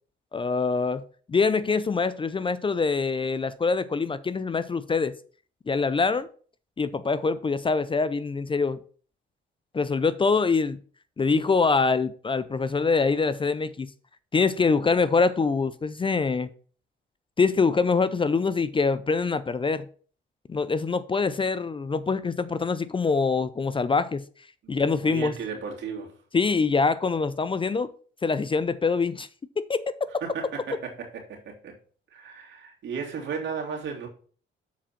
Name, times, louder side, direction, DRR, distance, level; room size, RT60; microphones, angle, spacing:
voice 1, 0.3-1.0 1.3-5.1 5.7-6.3 6.8-8.8 9.7-10.8 11.2-13.9 14.3-16.5 17.4-19.8 20.5-24.2 24.7-25.3 26.3-27.9 28.2-29.3 29.6-29.8, left 4 dB, 25° left, 0.5 m, -24 dB
voice 2, 24.6-26.1 30.2-31.7 32.1-34.1, right 6 dB, 70° right, 2.7 m, -35 dB
7.1 x 5.0 x 5.8 m
cardioid pair, 90°, 20 cm